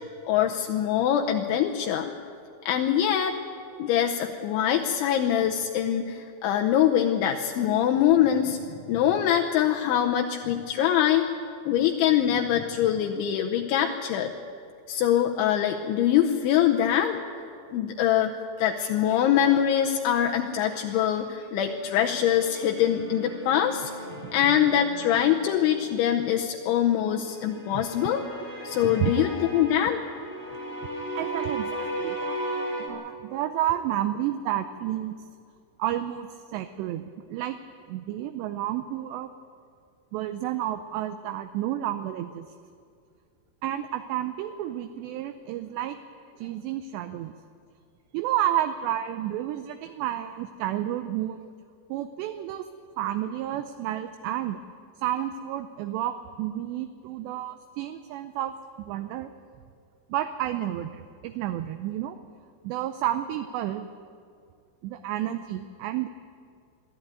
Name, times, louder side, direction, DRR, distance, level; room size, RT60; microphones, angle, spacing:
voice 1, 0.3-2.1 2.7-3.4 3.8-11.3 11.7-14.3 14.9-17.2 17.7-18.3 18.6-23.9 24.3-28.2 28.6-30.0, left 10 dB, 80° left, 2 dB, 3.1 m, -24 dB
sound 1, 21.7-26.0 27.4-32.9, right 1 dB, 20° right, 2.8 m, -36 dB
voice 2, 31.1-32.4 32.8-35.2 35.8-37.6 37.9-39.3 40.1-42.5 43.6-46.0 46.4-47.3 48.1-51.4 51.9-52.7 53.0-54.6 55.0-59.3 60.1-62.2 62.6-63.9 64.8-66.1, right 12 dB, 80° right, 9 dB, 2.5 m, -31 dB
23.5 x 14.0 x 9.3 m, 2.3 s
omnidirectional pair, 5.7 m